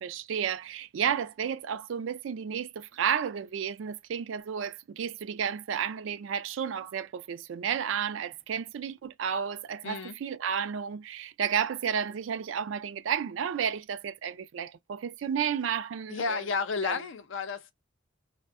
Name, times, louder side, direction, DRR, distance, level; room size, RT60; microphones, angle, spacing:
voice 1, 0.0-16.5 16.8-17.0, right 8 dB, 75° right, 0.4 m, -32 dB
voice 2, 9.8-10.2 16.1-17.7, left 4 dB, 70° left, 0.5 m, -32 dB
2.6 x 2.1 x 2.4 m
head